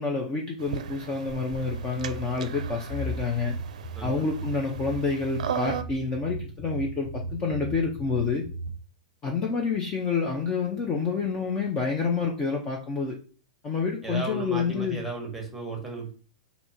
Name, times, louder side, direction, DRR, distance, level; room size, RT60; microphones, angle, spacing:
voice 1, 0.0-3.5 4.0-8.5 9.2-13.1 13.6-15.0, left 4 dB, 20° left, 0 dB, 0.7 m, -28 dB
sound 1, 0.6-5.8, right 8 dB, 80° right, 0.5 m, -37 dB
sound 2, 1.3-8.7, right 2 dB, 45° left, 1.6 m, -37 dB
voice 2, 3.9-4.3 14.0-16.1, right 3 dB, 5° right, 2 dB, 1.3 m, -34 dB
4.3 x 2.7 x 4.3 m, 0.38 s
hypercardioid pair, 155°, 4 cm